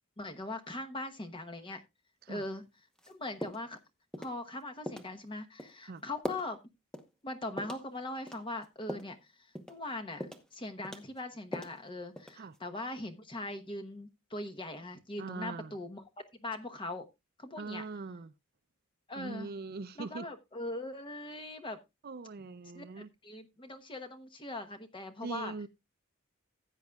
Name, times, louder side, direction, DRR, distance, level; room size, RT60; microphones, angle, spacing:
voice 1, 0.2-1.8 2.3-2.6 3.1-3.8 4.2-6.6 7.2-10.3 10.5-16.0 16.4-17.1 17.4-17.8 19.1-19.5 20.0-21.8 22.7-25.5, left 2 dB, 25° left, 1.0 m, -41 dB
sound 1, 3.0-3.1 3.4-3.8 4.1-4.4 4.9-5.1 5.6-5.7 6.2-6.5 6.9-7.1 7.6-7.9 8.3-9.1 9.6-9.8 10.2-10.5 10.8-11.8 12.2-12.6, left 1 dB, 5° left, 0.9 m, -41 dB
voice 2, 15.2-15.7 17.6-18.3 19.1-20.3 22.0-23.1 25.2-25.7, right 3 dB, 45° right, 0.5 m, -41 dB
15.5 x 8.2 x 2.3 m
head